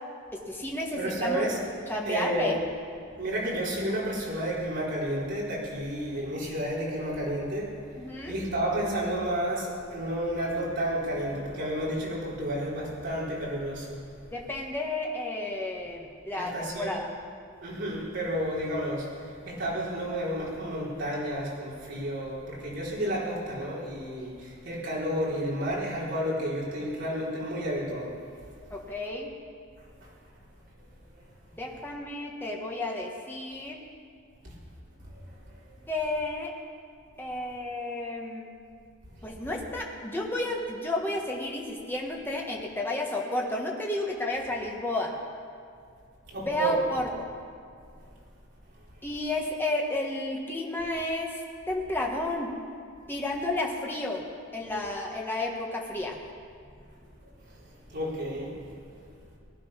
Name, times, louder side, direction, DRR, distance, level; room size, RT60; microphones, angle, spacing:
voice 1, 0.3-1.5 1.9-2.6 8.0-8.4 14.3-17.1 28.7-29.3 31.5-33.8 35.9-36.5 37.2-38.5 39.2-45.1 46.4-47.3 49.0-51.3 51.7-52.5 53.1-54.2 54.5-56.2, left 2 dB, 10° left, -1 dB, 1.6 m, -32 dB
voice 2, 1.0-1.6 2.0-2.5 3.2-7.7 8.3-14.0 16.4-16.9 17.6-19.1 19.5-28.1 46.3-46.8 57.9-58.5, right 1 dB, 55° right, -6 dB, 4.3 m, -31 dB
19.0 x 11.0 x 5.8 m, 2.2 s
head